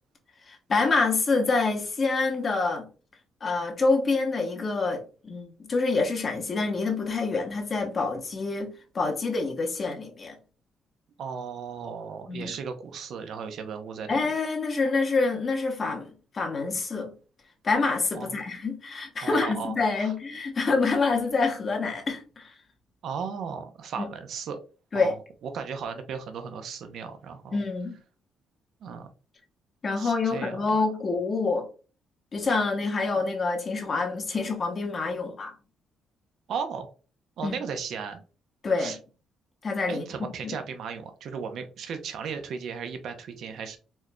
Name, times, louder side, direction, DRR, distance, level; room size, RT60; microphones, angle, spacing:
voice 1, 0.5-2.9 3.4-10.3 12.3-12.5 14.1-17.1 17.6-22.6 24.0-24.1 24.9-25.1 27.5-28.0 29.8-31.7 32.3-35.5 37.4-37.6 38.6-38.9 39.6-40.5, left 3 dB, 40° left, 1.1 m, -27 dB
voice 2, 11.2-14.2 18.1-18.4 19.2-20.1 23.0-24.6 24.9-25.2 25.4-27.6 28.8-29.1 30.0-30.8 36.5-36.9 37.4-38.2 38.8-39.0 39.9-43.8, right 6 dB, 70° right, 0.7 m, -36 dB
4.4 x 3.0 x 2.2 m
cardioid pair, 90°, 0 cm